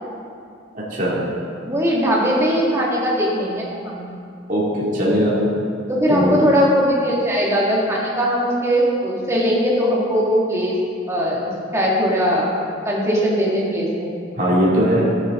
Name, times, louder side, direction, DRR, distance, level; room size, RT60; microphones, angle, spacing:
voice 1, 0.7-1.2 4.5-5.4 6.1-6.4 14.4-15.1, equal, 40° right, -7 dB, 2.5 m, -19 dB
voice 2, 1.7-4.2 5.9-10.8 11.1-11.4 11.7-12.5 12.8-14.2, equal, 15° right, -5 dB, 2.0 m, -20 dB
14.0 x 8.5 x 3.8 m, 2.4 s
head